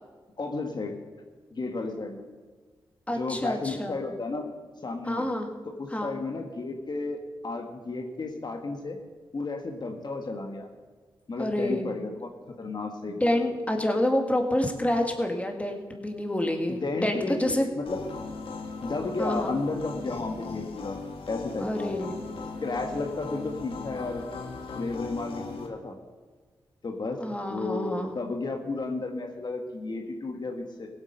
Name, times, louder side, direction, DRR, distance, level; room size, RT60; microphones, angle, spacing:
voice 1, 0.4-1.0 1.5-2.3 3.1-4.5 4.8-5.2 5.6-9.0 9.3-10.7 11.3-12.3 12.6-13.2 16.8-18.0 18.8-21.0 21.3-21.9 22.6-24.2 24.8-25.9 26.8-27.2 27.5-30.9, left 3 dB, 50° left, 3 dB, 1.5 m, -33 dB
voice 2, 3.1-4.0 5.0-5.5 5.9-6.2 11.4-12.0 13.1-17.7 19.2-19.5 21.6-22.2 27.1-28.1, left 1 dB, 15° left, 3 dB, 2.1 m, -28 dB
sound 1, 17.9-25.7, left 4 dB, 80° left, 1.6 m, -38 dB
16.5 x 8.2 x 5.4 m, 1.4 s
cardioid pair, 50°, 9 cm